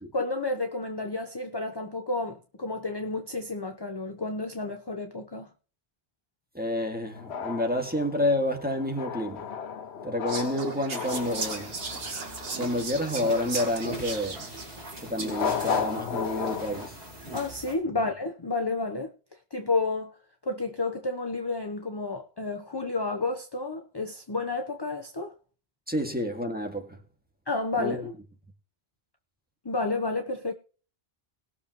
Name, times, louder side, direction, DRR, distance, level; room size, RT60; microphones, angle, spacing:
voice 1, 0.1-5.5 17.3-19.1 19.5-20.1 20.4-25.3 27.5-28.0 29.6-30.5, left 3 dB, 25° left, 0.9 m, -31 dB
voice 2, 6.5-9.5 10.0-11.7 12.5-14.5 15.0-17.0 25.9-27.0 27.8-28.1, left 1 dB, 10° right, 2.1 m, -29 dB
sound 1, 7.1-12.9 15.2-16.9, left 7 dB, 80° left, 1.1 m, -34 dB
Whispering, 10.3-15.6, right 4 dB, 65° right, 1.8 m, -37 dB
sound 2, 11.1-17.7, right 1 dB, 85° right, 5.5 m, -42 dB
20.5 x 7.0 x 3.1 m
omnidirectional pair, 1.1 m